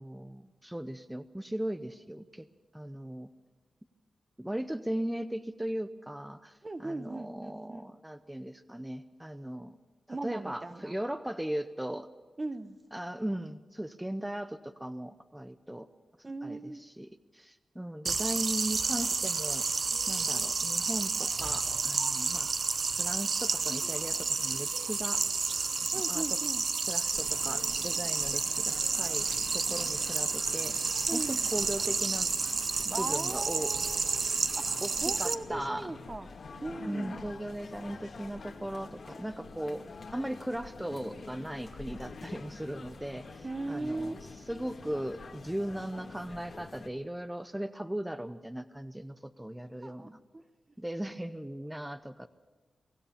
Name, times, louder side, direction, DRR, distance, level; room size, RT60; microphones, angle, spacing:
voice 1, 0.0-2.5 2.7-3.3 4.4-9.8 10.1-12.1 12.9-15.9 16.4-19.7 20.1-22.5 23.0-25.2 25.8-26.4 26.9-29.3 29.5-30.8 31.1-32.3 32.8-33.7 34.8-34.9 35.2-35.9 36.9-39.8 40.1-50.2 50.8-52.3, right 1 dB, 10° right, 11 dB, 0.7 m, -38 dB
voice 2, 6.6-7.9 10.1-10.9 12.4-12.8 16.2-16.8 25.9-26.6 31.1-31.5 32.9-36.3 36.6-37.4 43.4-44.1 49.8-50.4, right 2 dB, 30° right, 12 dB, 0.9 m, -38 dB
sound 1, 18.1-35.3, right 4 dB, 55° right, 0.8 m, -30 dB
sound 2, 27.1-46.9, left 4 dB, 65° left, 2.1 m, -47 dB
24.0 x 15.5 x 7.3 m, 1.3 s
cardioid pair, 80°, 0 cm